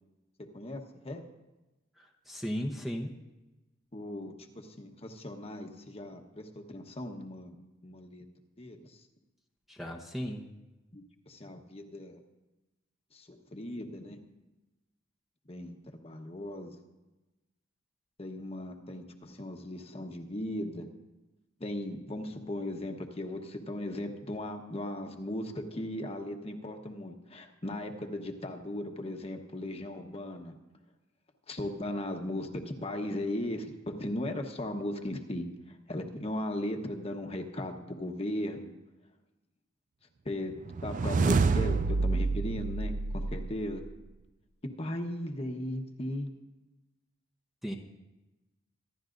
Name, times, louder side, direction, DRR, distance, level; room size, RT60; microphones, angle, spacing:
voice 1, 0.4-1.2 3.9-7.6 7.8-8.2 8.6-9.0 10.9-12.2 13.1-14.2 15.5-16.8 18.2-20.9 21.6-30.5 31.5-38.7 40.2-40.5 40.8-43.8 44.8-46.3, left 1 dB, 30° left, 4 dB, 1.1 m, -37 dB
voice 2, 2.0-3.1 9.7-10.4 47.6-47.8, equal, ahead, 2 dB, 0.8 m, -36 dB
sound 1, 40.7-43.9, right 4 dB, 40° right, 0.4 m, -28 dB
25.0 x 11.0 x 2.6 m, 1.1 s
head